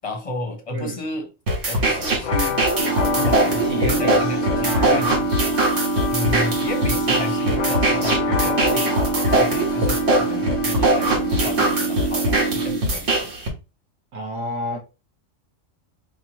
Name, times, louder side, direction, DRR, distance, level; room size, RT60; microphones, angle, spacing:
voice 1, 0.0-1.3 1.7-2.6 3.1-5.3 6.1-8.9 9.3-13.3, left 1 dB, 30° left, 0.8 m, -32 dB
sound 1, 1.5-13.5, right 1 dB, 65° right, 1.6 m, -22 dB
sound 2, 2.2-11.8, left 7 dB, 55° left, 0.4 m, -30 dB
sound 3, 2.8-12.8, right 4 dB, 40° right, 1.2 m, -25 dB
voice 2, 3.6-5.2 14.1-14.8, equal, 85° right, 1.5 m, -30 dB
4.6 x 3.0 x 3.0 m
omnidirectional pair, 1.4 m